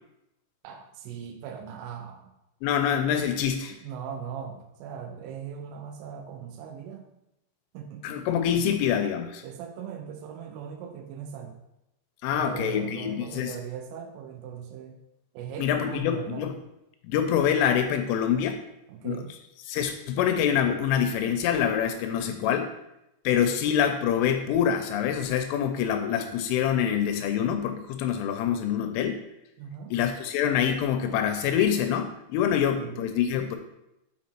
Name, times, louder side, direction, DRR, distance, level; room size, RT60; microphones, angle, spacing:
voice 1, 0.6-2.3 3.8-7.1 7.7-8.4 9.4-11.5 12.3-15.0 15.3-16.5 18.9-19.3 29.6-29.9 32.5-33.0, right 7 dB, 85° right, 4 dB, 3.1 m, -39 dB
voice 2, 2.6-3.8 8.0-9.4 12.2-13.6 15.6-16.6 17.0-18.6 19.0-19.2 19.7-22.7 23.2-29.2 29.9-33.6, left 8 dB, 85° left, 7 dB, 3.0 m, -25 dB
7.7 x 5.2 x 4.3 m, 0.89 s
omnidirectional pair, 5.9 m